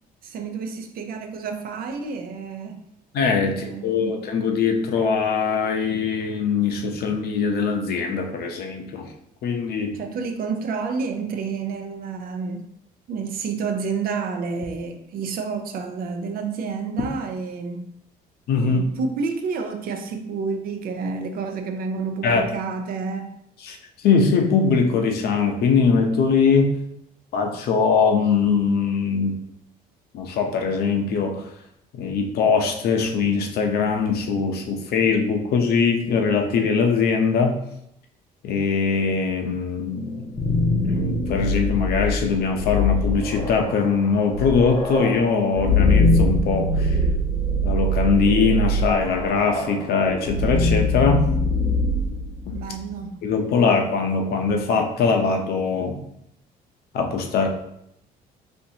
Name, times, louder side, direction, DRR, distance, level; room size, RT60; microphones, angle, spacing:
voice 1, 0.2-2.8 3.4-4.1 9.9-12.7 13.1-17.9 18.6-23.3 52.5-53.2, right 5 dB, 60° right, 5 dB, 0.6 m, -29 dB
voice 2, 3.1-9.1 9.4-10.0 18.5-18.8 22.2-22.5 23.6-26.8 27.3-29.4 30.1-31.5 31.9-37.6 38.4-40.3 40.6-47.0 47.6-51.3 52.5-52.6 53.2-56.0 56.9-57.5, left 5 dB, 70° left, 3 dB, 0.7 m, -21 dB
sound 1, 40.1-53.0, left 1 dB, 30° left, 0.7 m, -23 dB
4.4 x 2.8 x 2.8 m, 0.76 s
cardioid pair, 110°, 17 cm